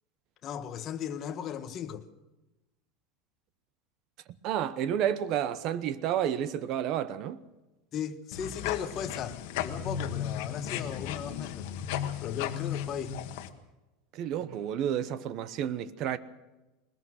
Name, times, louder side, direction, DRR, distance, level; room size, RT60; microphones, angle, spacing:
voice 1, 0.4-2.1 7.9-11.7 12.2-13.2, left 9 dB, 30° left, 1.1 m, -36 dB
voice 2, 4.4-7.4 14.1-16.2, right 10 dB, 40° right, 0.9 m, -30 dB
sound 1, 8.3-13.5, left 9 dB, 60° left, 1.5 m, -35 dB
20.5 x 20.0 x 6.4 m
supercardioid pair, 170°, 0 cm